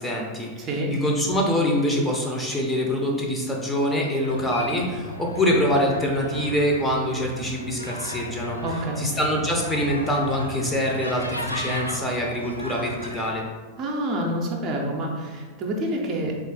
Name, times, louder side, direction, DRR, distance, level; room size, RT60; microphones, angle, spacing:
voice 1, 0.0-8.6 9.0-13.4, equal, 10° left, -1 dB, 0.6 m, -25 dB
voice 2, 0.6-0.9 8.6-9.0 13.8-16.4, right 1 dB, 35° right, 0 dB, 0.6 m, -27 dB
sound 1, 4.2-13.3, left 1 dB, 85° left, 0.3 m, -34 dB
3.9 x 2.5 x 3.7 m, 1.4 s
figure-of-eight pair, 90°, 0 cm